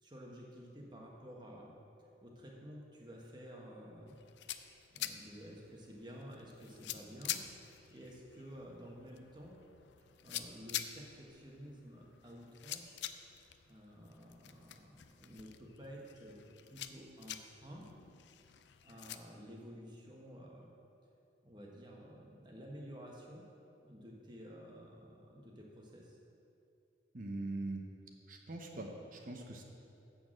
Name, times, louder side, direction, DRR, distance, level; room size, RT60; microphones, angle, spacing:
voice 1, 0.0-1.7 2.2-4.2 4.9-7.4 7.9-9.6 10.2-13.0 13.7-16.4 16.7-17.9 18.8-20.7 21.4-23.4 23.8-26.2, equal, 25° right, -1 dB, 1.2 m, -52 dB
sound 1, 4.1-19.2, left 11 dB, 70° left, 0.4 m, -47 dB
voice 2, 27.1-27.8 28.3-29.6, right 2 dB, 45° right, 2 dB, 0.8 m, -42 dB
6.9 x 6.3 x 7.6 m, 2.6 s
head